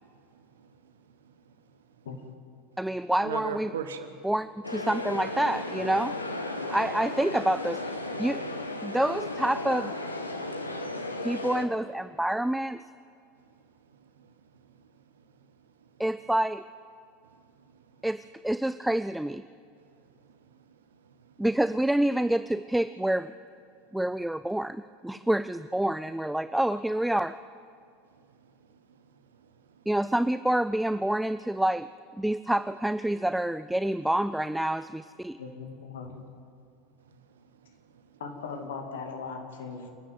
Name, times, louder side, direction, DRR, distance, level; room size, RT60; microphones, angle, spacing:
voice 1, 0.0-1.8 3.2-4.2 10.5-11.3 13.4-13.5 13.9-15.7 17.3-17.9 20.0-21.4 28.1-29.8 37.0-38.2, right 6 dB, 70° right, 1.2 m, -45 dB
voice 2, 2.8-3.7 4.2-6.2 6.7-8.4 8.8-9.9 11.2-12.8 16.0-16.6 18.0-19.4 21.4-23.3 23.9-27.4 29.9-31.9 32.2-35.4, right 1 dB, 5° right, 0.4 m, -27 dB
sound 1, 4.6-11.7, left 2 dB, 85° left, 1.4 m, -35 dB
voice 3, 35.4-36.2 38.2-39.9, left 5 dB, 70° left, 2.6 m, -38 dB
28.0 x 10.0 x 9.4 m
figure-of-eight pair, 80°, 0 cm